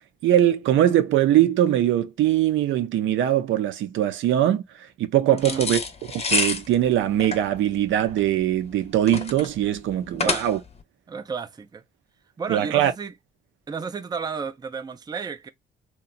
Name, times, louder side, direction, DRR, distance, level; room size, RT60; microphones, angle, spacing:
voice 1, 0.2-4.6 5.0-5.8 6.1-10.6 12.5-12.9, right 12 dB, 75° right, 0.5 m, -21 dB
voice 2, 5.3-5.7 10.1-10.5 11.1-11.8 12.4-13.1 13.7-15.5, right 5 dB, 20° right, 0.4 m, -32 dB
sound 1, 5.4-10.8, left 4 dB, 30° left, 0.7 m, -28 dB
2.8 x 2.2 x 2.4 m
cardioid pair, 90°, 20 cm